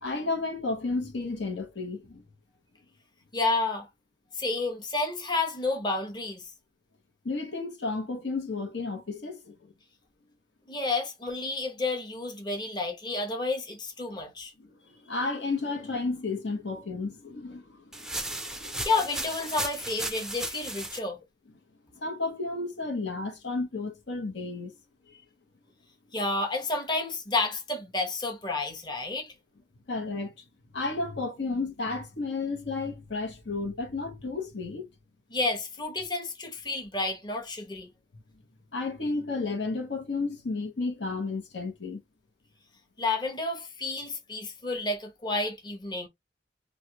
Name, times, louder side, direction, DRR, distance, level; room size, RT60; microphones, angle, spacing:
voice 1, 0.0-2.2 7.2-9.5 15.0-17.8 18.2-18.8 22.0-24.7 29.9-30.3 30.7-34.8 38.7-42.0, left 3 dB, 85° left, 1.0 m, -32 dB
voice 2, 3.3-3.9 4.3-6.5 10.7-14.5 18.8-21.2 26.1-29.3 35.3-37.9 43.0-46.1, left 3 dB, 25° left, 0.8 m, -30 dB
sound 1, 17.9-21.0, right 1 dB, 5° right, 0.4 m, -35 dB
3.2 x 2.4 x 2.8 m
head